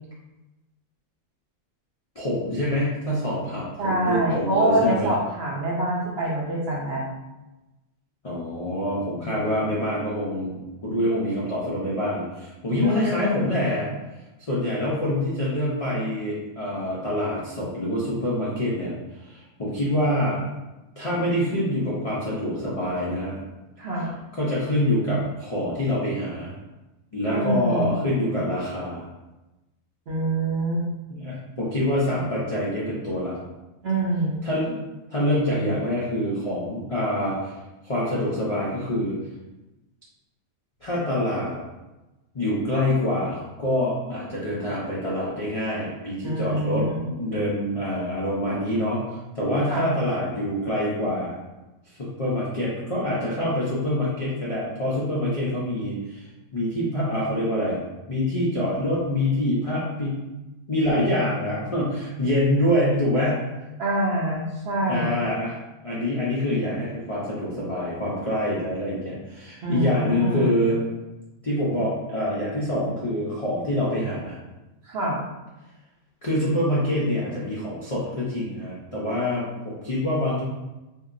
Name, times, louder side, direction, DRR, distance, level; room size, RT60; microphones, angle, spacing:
voice 1, 2.2-5.1 8.2-13.9 14.5-20.4 21.0-23.4 24.3-26.5 27.1-29.0 31.1-33.4 34.4-34.8 35.1-37.6 37.8-39.2 40.8-41.6 42.3-51.4 51.8-57.8 58.1-60.2 60.7-63.5 64.9-65.6 65.8-70.8 71.4-74.4 76.2-80.4, left 1 dB, 50° left, -8 dB, 0.4 m, -26 dB
voice 2, 3.8-7.0 9.2-9.6 12.8-13.6 23.8-24.1 27.3-27.9 30.1-30.8 33.8-34.4 46.2-47.0 49.7-49.9 63.8-65.2 69.6-70.6 74.8-75.2, right 1 dB, 60° right, -4 dB, 0.8 m, -25 dB
2.8 x 2.7 x 2.5 m, 1.1 s
omnidirectional pair, 1.4 m